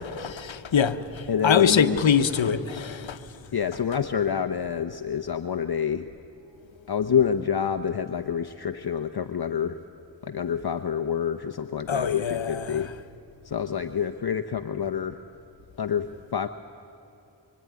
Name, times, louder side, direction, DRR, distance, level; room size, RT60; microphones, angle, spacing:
voice 1, 0.2-3.2 11.9-12.8, left 7 dB, 80° left, 10 dB, 1.1 m, -24 dB
voice 2, 1.3-2.0 3.5-6.1 6.9-9.8 10.2-12.9 13.4-15.2 15.8-16.5, left 7 dB, 55° left, 8 dB, 0.9 m, -27 dB
25.0 x 24.5 x 9.5 m, 2.7 s
cardioid pair, 45°, 45 cm